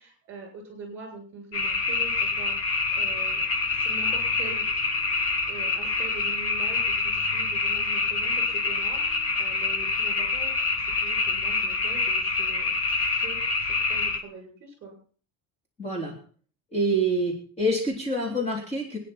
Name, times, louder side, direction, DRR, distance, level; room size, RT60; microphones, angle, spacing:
voice 1, 0.0-3.4 3.7-4.6 5.5-15.0, right 3 dB, 35° right, 2 dB, 7.2 m, -43 dB
sound 1, 1.5-14.2, left 4 dB, 40° left, 2.2 m, -26 dB
voice 2, 15.8-16.2 16.7-19.0, right 1 dB, 20° left, 0 dB, 3.2 m, -26 dB
24.5 x 10.0 x 4.3 m, 0.43 s
cardioid pair, 175°, 35 cm